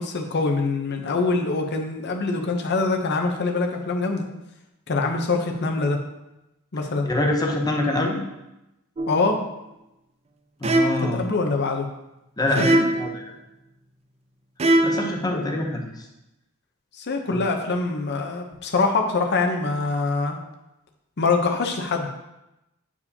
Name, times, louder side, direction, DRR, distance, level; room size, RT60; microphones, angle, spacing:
voice 1, 0.0-4.3 4.9-6.0 6.7-7.1 9.1-9.4 11.0-11.9 12.6-12.7 15.3-15.5 17.0-20.4 21.2-22.1, left 3 dB, 50° left, 3 dB, 0.8 m, -24 dB
voice 2, 7.1-8.2 10.6-11.2 12.4-13.2 14.8-15.9 17.3-17.4, left 2 dB, 20° left, 1 dB, 0.8 m, -25 dB
sound 1, 9.0-9.3 10.6-11.2 12.6-13.2 14.6-15.2, right 1 dB, 30° right, 0.4 m, -21 dB
8.3 x 4.7 x 2.8 m, 0.93 s
head